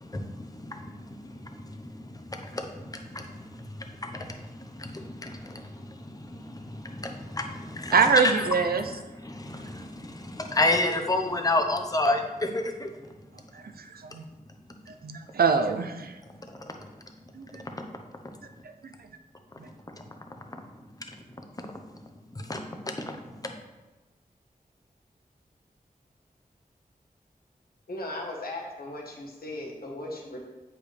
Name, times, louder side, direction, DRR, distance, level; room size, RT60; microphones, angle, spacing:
voice 1, 0.0-7.9 8.2-8.4 9.2-13.1 16.4-16.9 17.6-17.8 19.9-20.0 21.6-21.7 22.3-23.6, left 2 dB, 25° left, 4 dB, 0.8 m, -31 dB
voice 2, 7.9-8.9 13.5-14.2 14.9-16.2 17.3-17.6 18.6-19.1 19.6-19.7, right 5 dB, 85° right, 7 dB, 0.5 m, -25 dB
voice 3, 27.9-30.4, left 1 dB, 85° left, -1 dB, 1.3 m, -37 dB
8.3 x 5.1 x 3.3 m, 1.1 s
wide cardioid pair, 70°, 15 cm